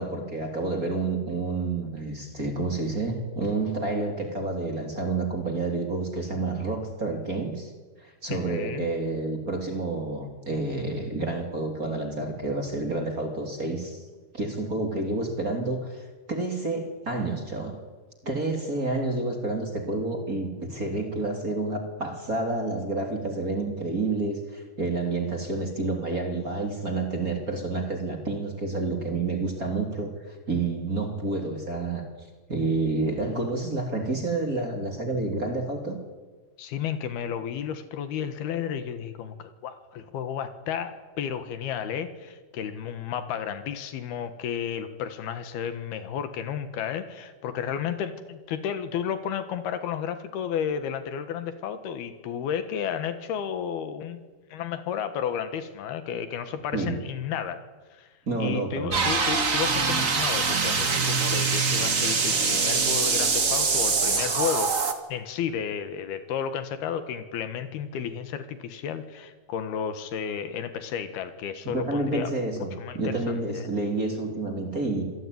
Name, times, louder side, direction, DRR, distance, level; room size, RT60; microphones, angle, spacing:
voice 1, 0.0-7.7 8.0-14.0 14.3-17.8 18.2-32.1 32.5-36.0 56.7-57.0 58.3-59.1 71.7-75.0, right 3 dB, 25° right, 4 dB, 3.2 m, -29 dB
voice 2, 8.3-8.9 36.6-54.2 54.5-57.6 57.9-58.1 58.4-64.7 65.1-72.4 72.8-73.7, left 8 dB, 75° left, 10 dB, 3.5 m, -32 dB
sound 1, 58.9-64.9, right 4 dB, 40° right, 1.1 m, -24 dB
26.5 x 18.5 x 9.5 m, 1.3 s
omnidirectional pair, 4.5 m